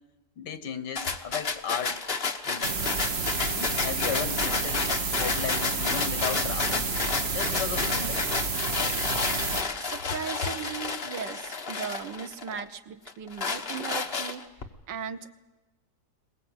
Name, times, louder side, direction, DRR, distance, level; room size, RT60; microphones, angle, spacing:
voice 1, 0.4-2.9 3.4-4.9 5.2-6.9 7.3-8.2, left 7 dB, 75° left, 1.8 m, -35 dB
sound 1, 1.0-12.6 13.1-14.6, left 4 dB, 35° left, 1.4 m, -31 dB
sound 2, 2.6-9.6, right 4 dB, 40° right, 1.4 m, -30 dB
voice 2, 9.8-14.5 14.9-15.3, right 7 dB, 90° right, 1.7 m, -37 dB
22.0 x 21.0 x 8.0 m
omnidirectional pair, 1.9 m